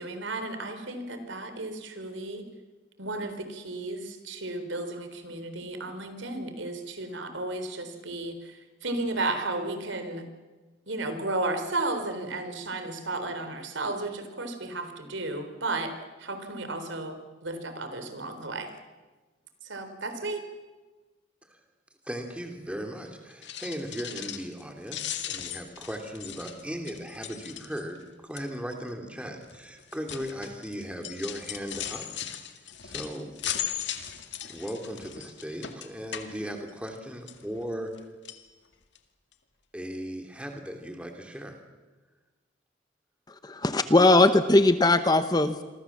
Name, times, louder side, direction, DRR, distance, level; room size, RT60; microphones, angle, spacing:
voice 1, 0.0-2.4 3.0-8.6 8.8-10.2 10.9-15.9 16.2-17.2 17.4-18.7 19.6-20.4, right 2 dB, 70° right, 8 dB, 3.8 m, -33 dB
voice 2, 22.0-28.0 28.2-32.0 32.8-33.3 34.5-37.9 39.7-41.6, equal, 5° right, 3 dB, 2.9 m, -37 dB
sound 1, 23.3-24.6 24.9-28.0 28.4-28.7 29.4-37.0 37.3-38.0 38.2-38.4 39.0-39.1 39.3-39.4, left 10 dB, 65° left, 2.0 m, -38 dB
voice 3, 43.4-45.6, left 2 dB, 20° left, 10 dB, 1.0 m, -20 dB
27.5 x 24.0 x 7.4 m, 1.3 s
head